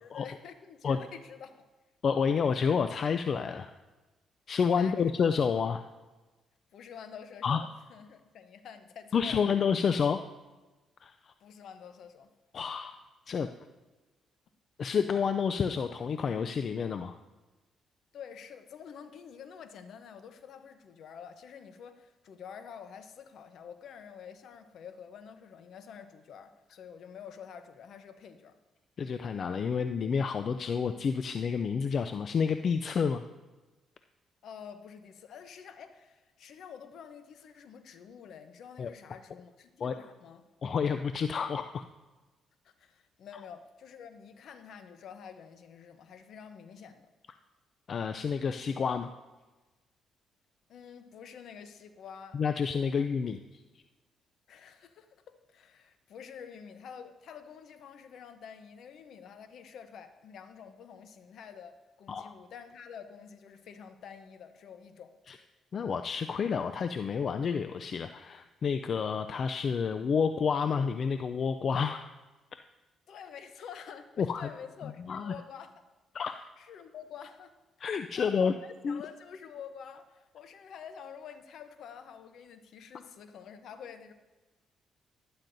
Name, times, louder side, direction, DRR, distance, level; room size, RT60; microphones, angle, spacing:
voice 1, 0.0-1.6 4.7-5.1 6.7-9.5 11.4-12.3 18.1-28.6 34.4-40.4 42.6-47.1 50.7-52.4 52.9-53.1 54.5-65.1 73.1-75.7 76.2-84.1, left 7 dB, 70° left, 10 dB, 0.8 m, -48 dB
voice 2, 2.0-3.7 4.5-5.8 7.4-7.6 9.1-10.2 11.0-11.3 12.5-13.0 13.3-13.5 14.8-17.2 29.0-33.2 38.8-38.9 39.8-39.9 40.6-41.8 47.9-49.1 52.3-53.6 62.1-62.3 65.3-65.4 65.7-72.1 72.5-72.6 74.2-74.5 74.8-75.3 76.1-76.3 77.8-78.5 78.8-79.0, left 6 dB, 50° left, 8 dB, 0.3 m, -29 dB
12.0 x 10.5 x 2.6 m, 1.2 s
cardioid pair, 90°, 0 cm